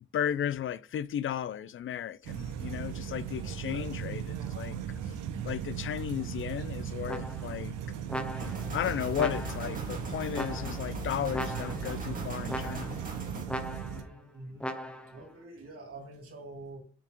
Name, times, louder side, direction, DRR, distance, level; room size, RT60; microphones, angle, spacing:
voice 1, 0.1-4.8 5.0-5.1 5.4-7.8 8.7-13.0, left 10 dB, 45° left, 0.4 m, -34 dB
sound 1, 2.2-14.0, right 8 dB, 90° right, 1.0 m, -37 dB
sound 2, 7.1-7.6 8.1-8.7 9.2-9.8 10.3-10.9 11.3-12.0 12.5-13.1 13.5-14.1 14.6-15.2, equal, 5° left, 0.6 m, -38 dB
sound 3, 8.4-13.5, right 1 dB, 25° right, 2.0 m, -40 dB
voice 2, 13.8-14.7 15.1-16.8, right 2 dB, 50° right, 2.8 m, -46 dB
6.0 x 4.4 x 3.8 m
cardioid pair, 90°, 30 cm